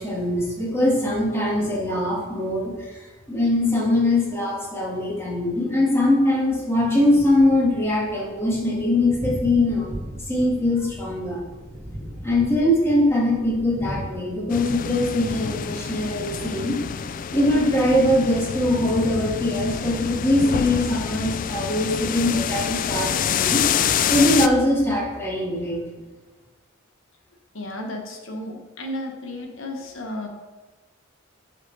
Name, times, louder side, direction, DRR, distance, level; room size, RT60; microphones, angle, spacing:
voice 1, 0.0-3.0 3.3-9.9 10.3-11.4 12.2-16.8 17.3-23.6 24.1-25.8, left 1 dB, 15° left, -4 dB, 2.0 m, -22 dB
Thunder, 6.7-22.0, equal, 50° right, 2.0 m, -39 dB
sound 1, 14.5-24.5, left 8 dB, 40° left, 0.3 m, -27 dB
voice 2, 27.5-30.3, left 1 dB, 70° left, 3 dB, 1.3 m, -33 dB
11.0 x 5.1 x 4.1 m, 1.2 s
head